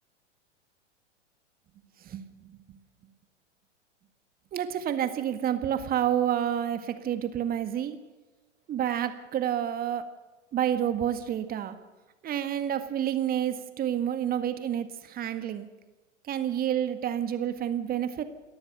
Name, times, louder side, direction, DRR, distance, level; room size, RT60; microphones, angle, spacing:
voice 1, 2.1-2.5 4.5-8.0 8.7-10.0 10.5-11.8 12.2-15.7 16.3-18.2, right 10 dB, 25° right, 10 dB, 1.8 m, -29 dB
29.0 x 13.5 x 6.9 m, 1.2 s
figure-of-eight pair, 100°, 37 cm